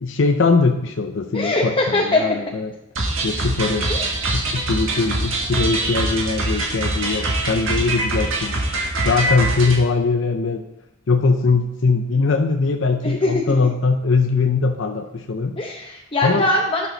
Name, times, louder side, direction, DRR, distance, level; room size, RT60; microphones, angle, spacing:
voice 1, 0.0-2.7 3.2-3.9 4.3-8.6 9.0-10.6 11.1-15.6 16.2-16.5, left 4 dB, 65° left, 4 dB, 0.6 m, -21 dB
voice 2, 1.3-2.2 3.9-4.1 13.0-13.3 15.6-16.9, left 2 dB, 25° left, -1 dB, 0.7 m, -21 dB
sound 1, 2.9-9.8, right 2 dB, 70° right, 1.7 m, -23 dB
10.5 x 6.1 x 4.0 m, 0.87 s
head